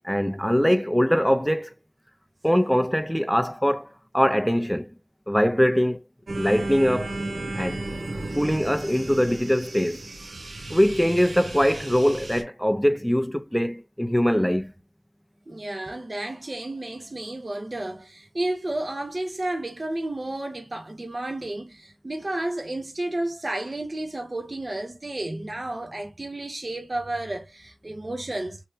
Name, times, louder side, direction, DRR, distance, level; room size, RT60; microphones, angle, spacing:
voice 1, 0.0-1.7 2.4-4.9 5.3-6.0 6.3-7.1 7.6-7.8 8.3-10.0 10.7-14.7, equal, ahead, 0.6 m, -22 dB
sound 1, 6.3-12.4, right 2 dB, 85° right, 0.9 m, -34 dB
voice 2, 15.5-28.6, right 1 dB, 45° right, 1.1 m, -32 dB
3.2 x 3.0 x 2.7 m
wide cardioid pair, 45°, 0 cm